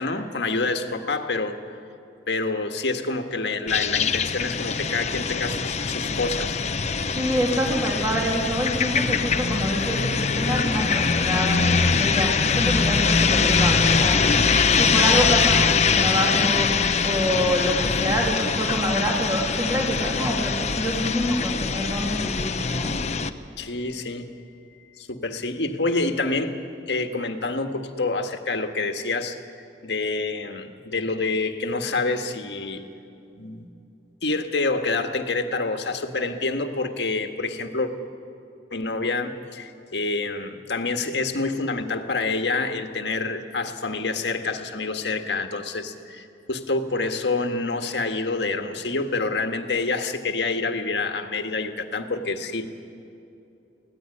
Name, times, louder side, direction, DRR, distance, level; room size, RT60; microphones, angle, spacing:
voice 1, 0.0-1.6 2.3-6.6 23.6-24.3 25.0-26.6 26.9-32.8 33.3-33.7 34.2-37.9 38.7-52.7, left 3 dB, 75° left, 6 dB, 1.6 m, -27 dB
sound 1, 3.7-23.3, left 5 dB, 40° left, 0.8 m, -23 dB
voice 2, 7.2-14.3 14.7-22.9, equal, 20° right, -1 dB, 2.8 m, -26 dB
24.0 x 17.5 x 9.9 m, 2.7 s
head